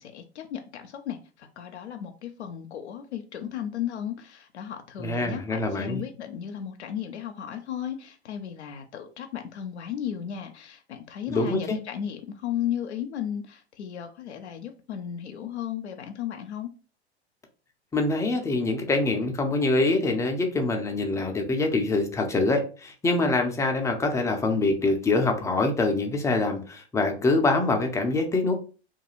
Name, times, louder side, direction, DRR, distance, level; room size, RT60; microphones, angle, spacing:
voice 1, 0.0-16.7, left 9 dB, 85° left, 5 dB, 0.5 m, -35 dB
voice 2, 5.0-6.0 11.3-11.8 17.9-28.5, left 2 dB, 10° left, 3 dB, 0.4 m, -25 dB
2.4 x 2.2 x 3.0 m, 0.37 s
hypercardioid pair, 95°, 33 cm